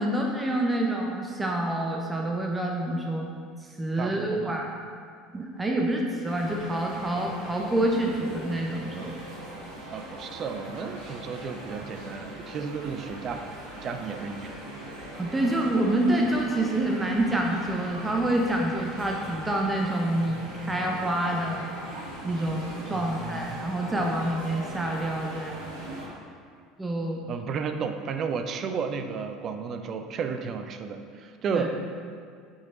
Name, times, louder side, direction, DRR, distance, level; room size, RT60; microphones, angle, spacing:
voice 1, 0.0-3.3 3.8-4.7 5.3-9.2 15.2-21.6 22.2-25.7 26.8-27.2 31.5-31.7, right 1 dB, 15° right, 0 dB, 0.9 m, -27 dB
voice 2, 4.0-4.6 9.9-13.5 13.8-14.6 22.9-23.6 27.3-31.8, right 5 dB, 40° right, 7 dB, 0.6 m, -33 dB
sound 1, 6.2-26.1, right 1 dB, 65° right, 2.0 m, -40 dB
8.6 x 5.5 x 3.9 m, 2.1 s
figure-of-eight pair, 65°, 0 cm